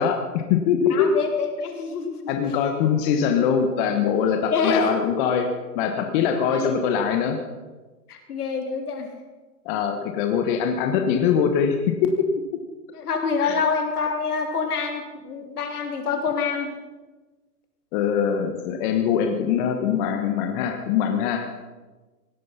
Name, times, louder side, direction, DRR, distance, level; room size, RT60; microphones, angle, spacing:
voice 1, 0.0-1.1 2.3-5.5 5.7-7.4 9.6-12.3 13.4-13.6 17.9-21.5, left 7 dB, 30° left, 5 dB, 1.3 m, -22 dB
voice 2, 0.9-2.2 4.5-5.1 6.5-6.8 8.1-9.1 12.9-16.7, left 5 dB, 70° left, 4 dB, 3.5 m, -26 dB
17.0 x 12.0 x 5.8 m, 1.3 s
hypercardioid pair, 140°, 47 cm